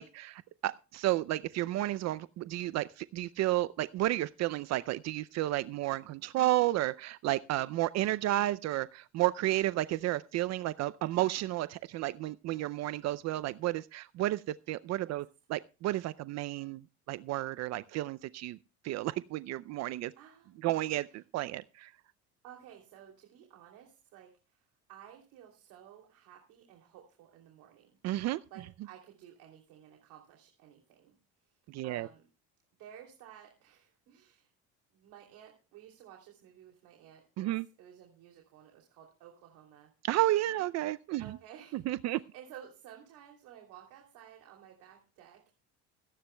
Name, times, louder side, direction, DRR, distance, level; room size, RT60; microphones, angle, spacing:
voice 1, 0.0-16.8 17.1-18.6 18.8-20.1 20.6-21.9 28.0-28.4 31.7-32.1 37.4-37.7 40.0-41.2 41.7-42.2, right 15 dB, 55° right, 0.5 m, -32 dB
voice 2, 20.2-20.7 21.1-21.2 22.4-28.0 28.5-31.1 31.4-32.2 32.8-34.5 34.9-37.5 37.8-39.9 41.2-45.6, right 10 dB, 75° right, 3.0 m, -54 dB
25.0 x 10.0 x 2.2 m
cardioid pair, 105°, 31 cm